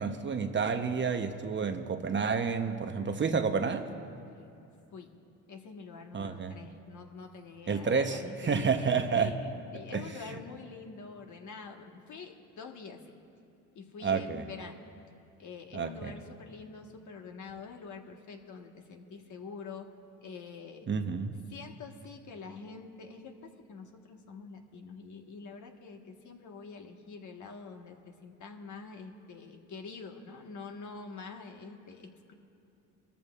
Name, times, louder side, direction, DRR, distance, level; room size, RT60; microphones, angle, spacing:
voice 1, 0.0-3.9 6.1-6.5 7.7-9.3 9.9-10.1 14.0-14.4 15.7-16.1 20.9-21.4, right 5 dB, 30° right, 6 dB, 0.9 m, -30 dB
voice 2, 5.5-13.2 13.7-14.8 15.4-19.9 20.2-20.9 21.5-32.3, left 5 dB, 50° left, 3 dB, 1.5 m, -46 dB
21.5 x 14.0 x 2.5 m, 2.6 s
supercardioid pair, 80°, 38 cm